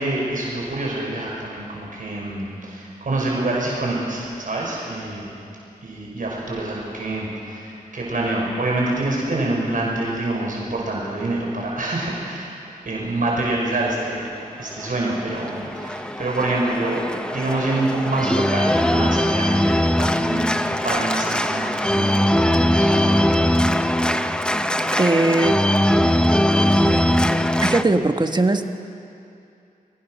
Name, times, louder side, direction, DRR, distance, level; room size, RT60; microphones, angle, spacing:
voice 1, 0.0-5.3 5.8-12.6 12.8-14.3 14.6-19.6 20.0-23.4, right 2 dB, 60° right, -3 dB, 5.8 m, -26 dB
Organ, 14.7-27.8, equal, 5° left, 0.9 m, -20 dB
voice 2, 24.9-25.6 26.8-27.2 27.6-28.7, right 2 dB, 30° right, 6 dB, 1.5 m, -20 dB
29.0 x 23.0 x 6.5 m, 2.6 s
wide cardioid pair, 95°, 16 cm